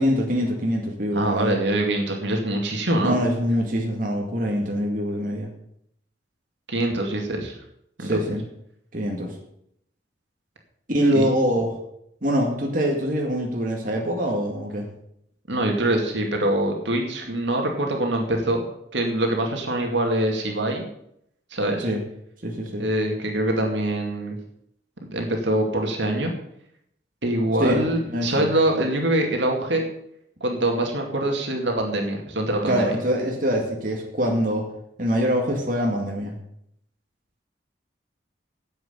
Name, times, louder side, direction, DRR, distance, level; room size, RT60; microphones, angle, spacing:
voice 1, 0.0-1.6 3.0-5.5 8.0-8.4 8.9-9.3 10.9-11.8 12.2-14.9 21.8-22.0 22.4-22.8 27.6-27.8 28.1-28.5 32.7-34.6 35.0-36.4, equal, 45° right, 0 dB, 2.1 m, -24 dB
voice 2, 1.1-3.2 6.7-7.6 8.0-8.2 11.1-11.2 15.5-18.6 18.9-20.9 21.5-21.9 22.8-24.4 25.1-26.3 27.2-29.8 30.4-32.9, right 1 dB, 75° right, 2 dB, 2.3 m, -24 dB
9.4 x 8.1 x 8.2 m, 0.74 s
head